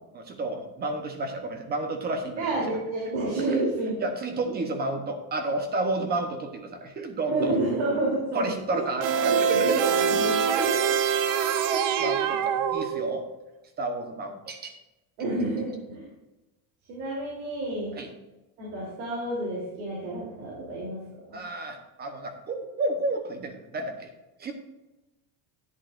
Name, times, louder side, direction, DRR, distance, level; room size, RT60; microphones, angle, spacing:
voice 1, 0.1-2.6 3.5-3.6 4.0-7.6 8.3-9.8 10.5-10.9 11.7-13.2 13.8-14.7 18.0-18.1 21.3-24.1 24.4-24.5, right 2 dB, 20° right, 6 dB, 0.9 m, -31 dB
voice 2, 2.4-4.0 4.4-4.6 7.3-10.9 15.2-16.1 16.9-18.0 18.6-21.0 21.3-21.4, right 2 dB, 90° right, -5 dB, 3.4 m, -30 dB
sound 1, 9.0-13.3, right 7 dB, 45° right, 0.6 m, -24 dB
10.5 x 10.5 x 2.5 m, 1.0 s
cardioid pair, 175°, 46 cm